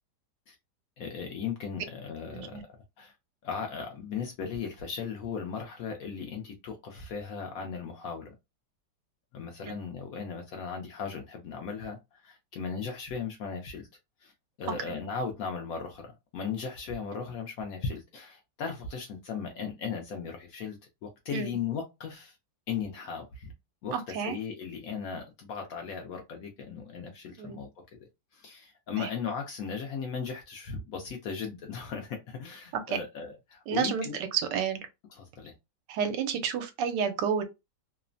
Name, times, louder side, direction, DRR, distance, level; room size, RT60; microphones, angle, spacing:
voice 1, 1.0-2.6 3.0-3.1 3.4-8.3 9.3-13.9 14.2-14.3 14.6-22.4 22.7-23.5 23.8-27.7 28.3-34.2 35.2-35.5, left 6 dB, 70° left, 0.8 m, -37 dB
voice 2, 2.3-2.6 9.7-9.8 21.3-21.5 23.9-24.4 27.4-27.6 29.0-29.1 32.7-33.0 33.7-34.9 35.9-37.4, right 7 dB, 85° right, 1.2 m, -30 dB
3.0 x 2.0 x 2.5 m
omnidirectional pair, 1.9 m